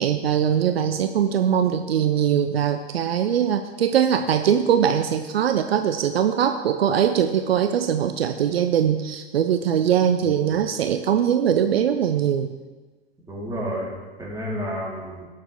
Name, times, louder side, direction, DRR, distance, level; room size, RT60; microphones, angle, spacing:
voice 1, 0.0-12.5, right 9 dB, 70° right, 8 dB, 0.6 m, -21 dB
voice 2, 13.3-15.3, equal, 10° right, -5 dB, 3.6 m, -31 dB
17.5 x 6.8 x 3.5 m, 1.3 s
figure-of-eight pair, 90°, 31 cm